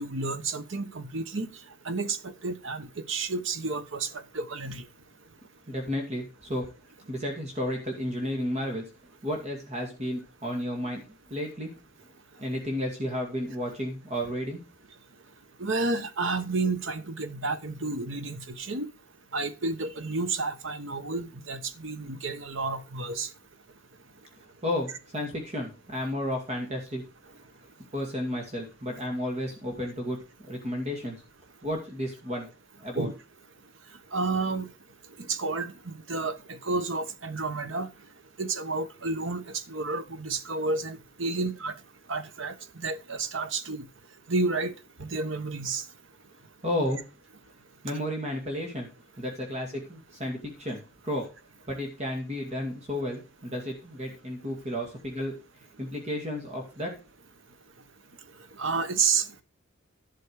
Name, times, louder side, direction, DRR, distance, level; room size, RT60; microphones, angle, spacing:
voice 1, 0.0-1.5 1.8-4.1 4.3-4.8 15.6-18.9 19.3-23.3 33.0-33.1 34.1-34.7 35.3-37.9 38.4-39.4 39.7-41.7 42.1-42.5 42.8-43.8 44.3-44.7 45.0-45.8 58.6-59.4, right 3 dB, 65° right, 1.2 m, -30 dB
voice 2, 5.7-6.7 7.1-8.9 9.2-11.0 11.3-11.7 12.4-14.6 24.6-27.0 27.9-30.2 30.5-31.2 31.6-32.5 32.8-33.1 46.6-47.0 47.8-48.9 49.2-51.3 51.7-55.3 55.8-57.0, left 1 dB, 35° right, 2.3 m, -32 dB
11.5 x 6.3 x 4.8 m
head